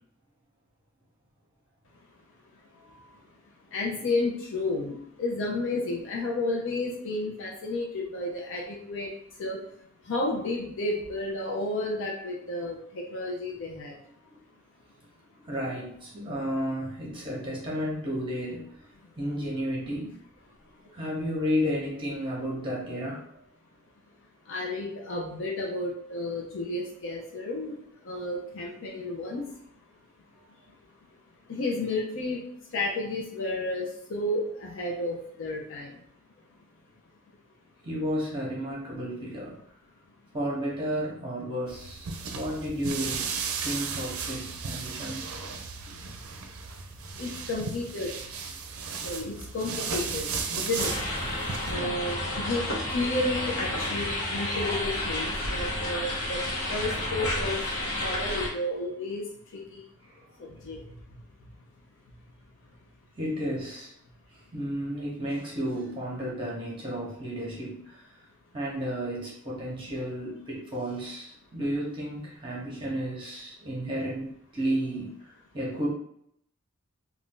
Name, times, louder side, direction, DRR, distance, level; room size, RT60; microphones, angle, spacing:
voice 1, 3.7-9.1 9.4-9.6 10.1-13.9 24.5-27.8 28.1-29.4 31.5-32.4 32.7-35.9 47.2-48.1 49.0-50.3 50.5-50.9 51.7-56.4 56.7-57.6 58.0-59.2 59.7-59.8 60.7-60.8, left 2 dB, 65° left, -1 dB, 0.5 m, -31 dB
voice 2, 15.4-18.8 19.2-20.1 20.9-23.2 28.9-29.0 37.8-39.6 40.3-43.3 43.6-45.3 51.6-51.9 60.0-60.2 63.2-63.9 64.3-68.2 68.5-75.9, equal, 25° right, -4 dB, 0.8 m, -32 dB
sound 1, 41.7-51.7, right 5 dB, 80° right, 0.5 m, -35 dB
sound 2, 50.8-58.5, left 1 dB, 80° left, 0.9 m, -31 dB
2.5 x 2.3 x 3.6 m, 0.71 s
head